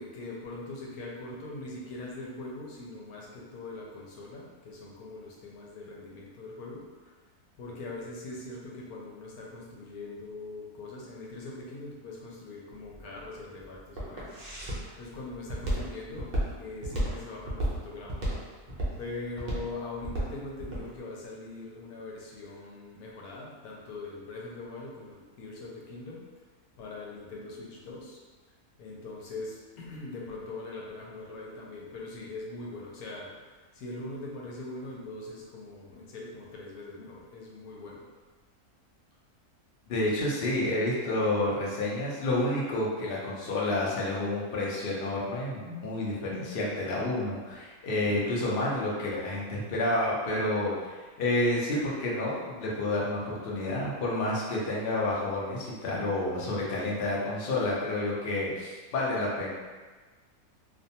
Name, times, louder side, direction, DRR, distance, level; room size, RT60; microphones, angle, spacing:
voice 1, 0.0-7.1 7.6-14.4 15.0-18.4 19.0-26.3 26.8-28.2 28.8-33.4 33.7-38.0 48.1-48.3, left 2 dB, 90° left, -3 dB, 1.1 m, -42 dB
Walk footsteps, 12.7-20.9, right 1 dB, 65° right, 0.4 m, -33 dB
voice 2, 39.9-59.5, left 1 dB, 60° left, -5 dB, 0.6 m, -29 dB
2.5 x 2.2 x 2.7 m, 1.4 s
omnidirectional pair, 1.6 m